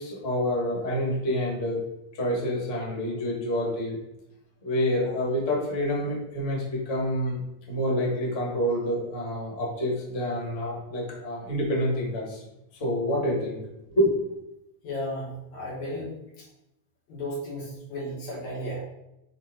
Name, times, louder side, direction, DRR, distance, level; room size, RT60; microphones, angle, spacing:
voice 1, 0.0-1.8 2.1-4.0 4.6-7.4 7.7-12.4 12.8-13.6 13.9-14.1, equal, 25° left, -4 dB, 1.7 m, -27 dB
voice 2, 14.8-16.4 17.1-18.8, equal, 70° left, -5 dB, 3.4 m, -34 dB
6.5 x 4.4 x 4.8 m, 0.89 s
omnidirectional pair, 3.4 m